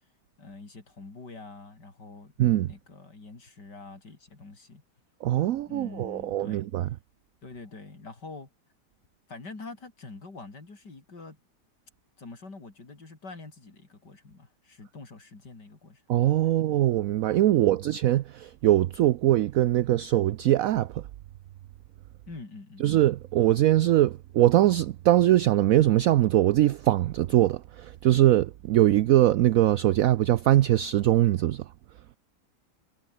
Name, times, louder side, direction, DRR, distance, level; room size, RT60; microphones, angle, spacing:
voice 1, 0.4-2.3 2.6-4.8 5.7-6.7 7.4-8.5 9.3-11.4 12.2-16.0 16.4-16.6 17.5-17.8 22.3-22.9, left 3 dB, 85° left, 5.1 m, -45 dB
voice 2, 2.4-2.7 5.2-6.9 16.1-21.0 22.8-31.6, right 13 dB, 65° right, 0.9 m, -22 dB
omnidirectional pair, 1.8 m